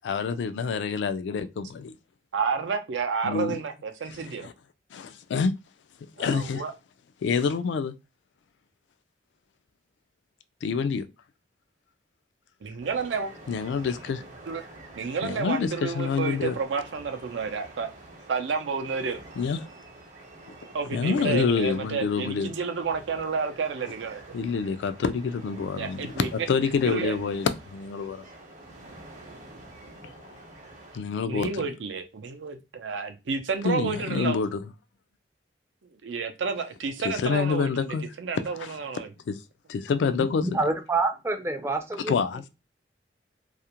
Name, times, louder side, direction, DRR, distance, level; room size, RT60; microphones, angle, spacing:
voice 1, 0.0-1.9 3.2-3.6 4.4-4.5 4.9-5.5 6.2-6.6 7.2-7.9 10.6-11.0 13.5-14.2 15.2-16.5 19.4-19.7 20.9-22.5 24.3-28.3 30.9-31.7 33.6-34.6 37.0-38.1 38.6-38.7 39.3-39.4 39.7-40.4 42.1-42.5, left 5 dB, 70° left, 0.3 m, -27 dB
voice 2, 2.3-4.5 6.2-6.7 12.6-13.3 14.5-14.6 15.0-17.9 18.3-19.2 20.7-24.4 25.7-26.5 26.8-27.2 28.9-29.0 29.2-30.2 31.3-34.4 36.0-39.1, right 5 dB, 85° right, 0.5 m, -31 dB
sound 1, 12.8-31.0, right 2 dB, 45° right, 0.7 m, -48 dB
voice 3, 40.2-42.5, right 3 dB, 15° right, 0.4 m, -28 dB
2.4 x 2.1 x 2.8 m
head